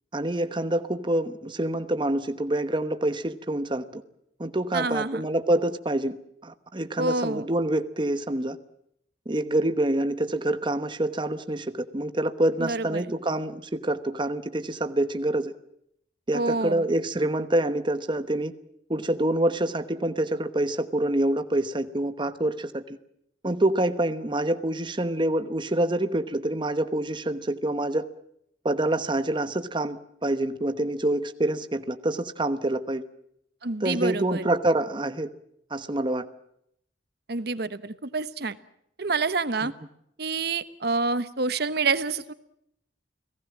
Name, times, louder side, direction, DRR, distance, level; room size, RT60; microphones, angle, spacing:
voice 1, 0.1-4.0 4.4-6.2 6.4-8.6 9.3-15.5 16.3-18.5 18.9-23.0 23.4-28.0 28.6-33.0 33.8-35.3 35.7-36.3 39.6-39.7, right 1 dB, 25° right, 10 dB, 1.1 m, -26 dB
voice 2, 4.7-5.2 7.0-7.4 12.6-13.1 16.3-16.8 33.6-34.4 37.3-38.6 39.0-39.7 40.2-42.3, right 3 dB, 60° right, 14 dB, 1.1 m, -28 dB
30.0 x 18.5 x 7.4 m, 0.75 s
head